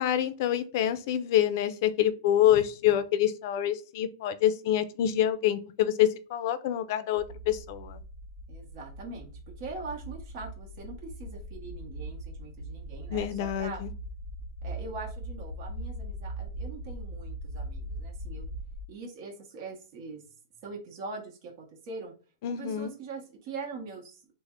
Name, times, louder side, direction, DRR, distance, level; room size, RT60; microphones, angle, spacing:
voice 1, 0.0-8.0 13.1-13.9 22.4-22.9, left 11 dB, 50° left, 12 dB, 0.4 m, -26 dB
sound 1, 7.1-18.8, right 1 dB, 80° right, 0.8 m, -40 dB
voice 2, 8.5-13.8 14.6-18.5 18.9-20.2 20.6-22.1 22.5-24.2, right 3 dB, 45° right, -1 dB, 0.9 m, -42 dB
3.3 x 2.0 x 3.5 m, 0.35 s
hypercardioid pair, 150°, 2 cm